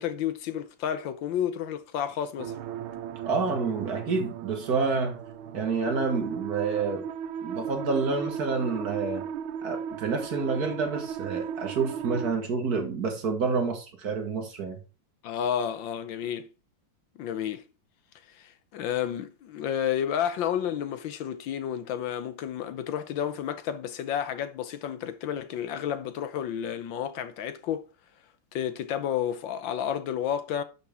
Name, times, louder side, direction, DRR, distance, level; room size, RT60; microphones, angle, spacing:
voice 1, 0.0-2.5 15.2-16.5 17.2-17.7 18.3-27.8 28.5-30.6, left 9 dB, 70° left, 1.4 m, -31 dB
sound 1, 2.4-12.3, right 8 dB, 90° right, 1.6 m, -36 dB
voice 2, 3.3-5.2 5.5-7.1 7.4-9.3 9.6-14.8, right 4 dB, 50° right, 1.8 m, -28 dB
11.5 x 5.3 x 3.6 m
omnidirectional pair, 2.2 m